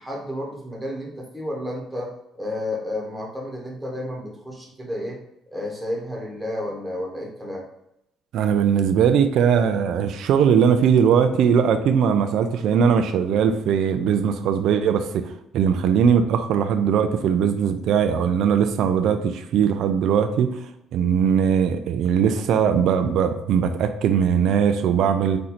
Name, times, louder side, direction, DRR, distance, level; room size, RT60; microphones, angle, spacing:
voice 1, 0.0-5.2 5.5-7.6, left 1 dB, 5° right, -1 dB, 1.1 m, -31 dB
voice 2, 8.3-20.5 20.9-25.4, right 7 dB, 65° right, 8 dB, 0.4 m, -20 dB
4.3 x 2.6 x 4.1 m, 0.81 s
cardioid pair, 140°, 0 cm